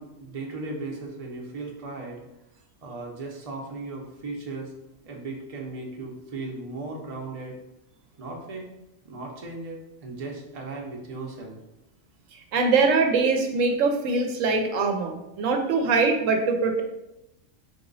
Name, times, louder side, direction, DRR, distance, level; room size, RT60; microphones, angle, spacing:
voice 1, 0.0-2.2 2.8-4.7 5.0-7.6 8.2-8.6 9.0-11.6, right 3 dB, 35° right, 0 dB, 0.7 m, -36 dB
voice 2, 12.5-16.8, right 4 dB, 75° right, 4 dB, 0.9 m, -23 dB
3.9 x 2.9 x 3.9 m, 0.89 s
omnidirectional pair, 1.4 m